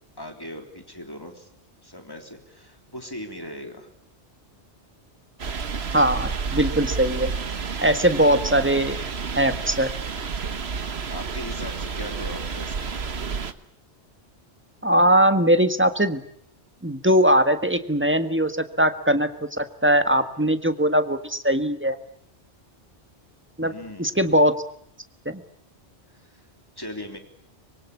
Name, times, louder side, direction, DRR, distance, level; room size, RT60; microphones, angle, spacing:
voice 1, 0.2-1.5 1.8-3.9 10.8-12.9 20.4-20.5 23.6-24.1 26.1-26.4 26.8-27.2, left 1 dB, 20° left, 5 dB, 3.6 m, -39 dB
sound 1, 5.4-13.5, right 5 dB, 70° right, 1.5 m, -30 dB
voice 2, 5.9-7.3 7.8-9.0 9.4-9.9 14.8-16.2 16.8-19.3 19.6-22.0 23.6-23.7 24.0-24.5 25.2-25.4, right 1 dB, 10° right, 9 dB, 1.5 m, -20 dB
25.0 x 23.0 x 8.5 m, 0.67 s
omnidirectional pair, 1.1 m